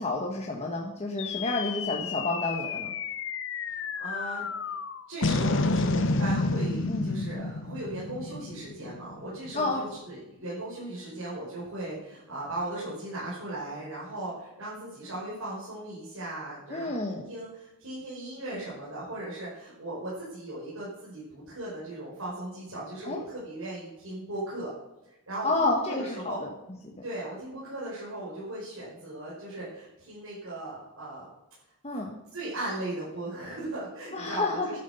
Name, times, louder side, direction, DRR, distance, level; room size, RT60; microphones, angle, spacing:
voice 1, 0.0-2.9 6.9-7.1 9.5-9.8 16.7-17.3 23.0-23.2 25.4-26.5 26.8-26.9 31.8-32.2 34.1-34.8, left 2 dB, 30° left, 0 dB, 1.4 m, -30 dB
sound 1, 1.2-9.8, left 3 dB, 60° left, 0.9 m, -30 dB
voice 2, 4.0-4.7 5.1-24.7 25.3-26.4 27.0-31.3 31.9-32.0 32.3-34.8, right 1 dB, 75° right, -8 dB, 5.5 m, -37 dB
11.5 x 9.8 x 6.9 m, 0.92 s
head